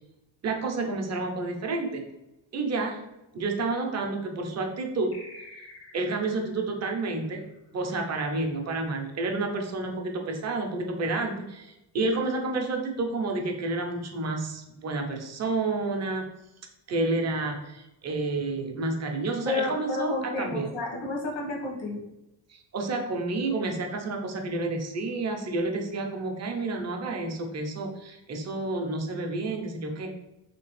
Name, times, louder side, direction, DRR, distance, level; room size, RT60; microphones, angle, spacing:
voice 1, 0.4-2.0 2.5-3.0 3.3-5.2 5.9-7.5 7.7-16.3 16.9-20.7 22.5-30.1, right 3 dB, 40° right, 3 dB, 0.5 m, -30 dB
sound 1, 5.1-8.1, left 1 dB, 35° left, 0.4 m, -50 dB
voice 2, 19.5-22.0, left 3 dB, 80° left, -1 dB, 1.1 m, -31 dB
3.1 x 2.8 x 3.0 m, 0.93 s
wide cardioid pair, 180°, 45 cm